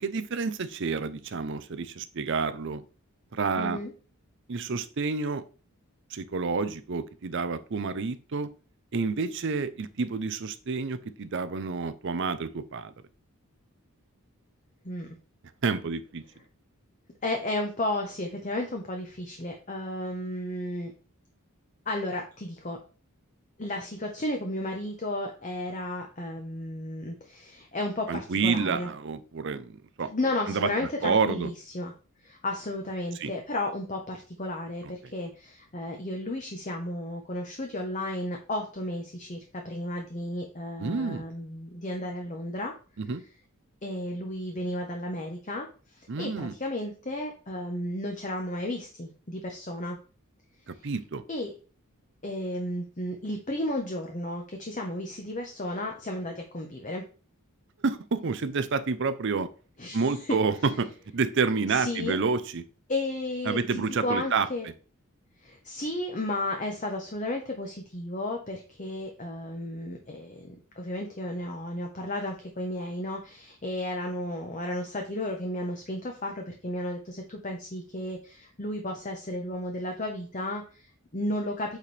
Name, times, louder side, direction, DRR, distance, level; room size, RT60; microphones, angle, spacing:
voice 1, 0.0-2.8 3.3-3.8 4.5-5.4 6.1-8.5 8.9-12.9 15.6-16.2 28.1-30.1 30.5-30.7 31.0-31.5 33.2-33.3 34.8-34.9 40.8-41.3 43.0-43.2 46.1-46.5 50.7-51.2 57.8-59.5 59.9-62.6 63.5-64.5, right 4 dB, 55° right, 12 dB, 0.6 m, -29 dB
voice 2, 3.6-3.9 14.8-15.1 17.2-20.9 21.9-22.8 23.6-28.9 30.1-31.9 32.2-42.7 43.8-50.0 50.7-50.9 51.3-51.5 52.2-57.0 59.8-60.4 61.7-62.2 62.9-64.7 65.4-81.8, left 1 dB, 35° left, 2 dB, 0.9 m, -33 dB
8.3 x 4.4 x 3.3 m, 0.36 s
head